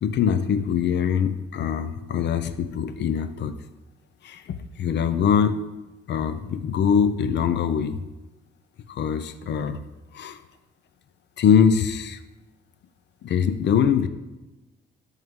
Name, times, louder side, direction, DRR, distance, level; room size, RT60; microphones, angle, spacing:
voice 1, 0.0-3.6 4.2-5.6 6.1-8.0 8.9-9.8 10.1-10.4 11.4-12.2 13.2-14.1, left 7 dB, 60° left, 11 dB, 0.6 m, -23 dB
10.5 x 3.6 x 3.7 m, 1.1 s
cardioid pair, 90°, 20 cm